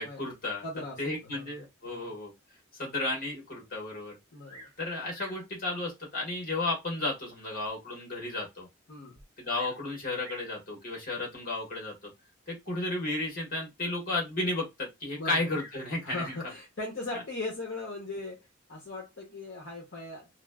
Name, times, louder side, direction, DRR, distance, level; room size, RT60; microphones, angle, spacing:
voice 1, 0.0-0.6 1.0-2.3 2.8-4.2 4.8-8.7 9.4-12.1 12.5-16.4, left 2 dB, 45° left, 1.4 m, -33 dB
voice 2, 0.6-1.5 1.9-2.1 4.3-4.7 8.9-9.2 15.2-15.5 16.0-18.4 18.7-20.3, left 2 dB, 60° left, 0.8 m, -39 dB
Bird vocalization bird call bird song, 4.4-4.8 5.1-5.5 6.3-6.4 7.1-7.2 7.7-7.8 8.0-8.1 9.1-9.8 10.2-10.5 11.5-11.9 15.5-16.5 17.6-18.0, right 1 dB, 35° right, 1.1 m, -51 dB
3.0 x 2.3 x 2.2 m
head